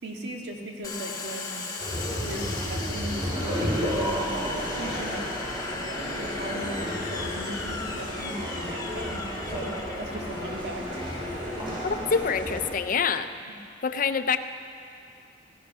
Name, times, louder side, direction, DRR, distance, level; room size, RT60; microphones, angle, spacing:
voice 1, 0.0-1.6 2.2-5.3 6.1-11.0 13.5-13.6, right 1 dB, 60° right, 1 dB, 1.9 m, -38 dB
Domestic sounds home sounds, 0.8-12.2, left 3 dB, 20° left, 1.3 m, -37 dB
sound 1, 1.8-12.7, equal, 25° right, 4.9 m, -32 dB
voice 2, 11.8-13.3 13.8-14.4, left 6 dB, 45° left, 10 dB, 0.5 m, -26 dB
17.0 x 15.0 x 5.5 m, 2.4 s
head